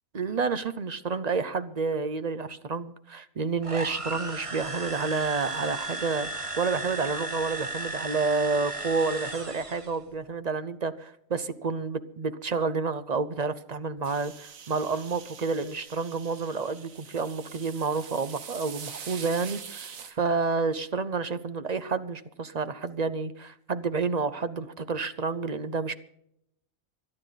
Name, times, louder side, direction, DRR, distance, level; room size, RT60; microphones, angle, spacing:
voice 1, 0.1-25.9, right 4 dB, 45° right, 13 dB, 0.6 m, -29 dB
sound 1, 3.6-10.0, right 2 dB, 25° right, 1.3 m, -35 dB
sound 2, 14.0-20.1, right 7 dB, 75° right, 1.5 m, -44 dB
26.0 x 9.9 x 4.1 m, 0.74 s
omnidirectional pair, 1.4 m